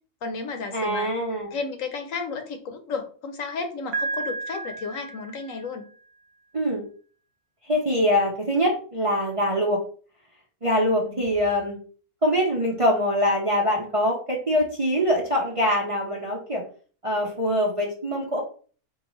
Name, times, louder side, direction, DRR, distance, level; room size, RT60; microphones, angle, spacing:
voice 1, 0.2-1.1 1.5-5.8 11.0-11.1, left 4 dB, 65° left, 5 dB, 1.1 m, -32 dB
voice 2, 0.7-1.6 6.5-6.8 7.6-9.8 10.6-11.8 12.2-16.6 17.0-18.4, equal, 35° right, -3 dB, 0.5 m, -23 dB
Piano, 3.9-5.8, right 3 dB, 80° right, 1.1 m, -32 dB
4.5 x 2.6 x 3.1 m, 0.41 s
omnidirectional pair, 1.5 m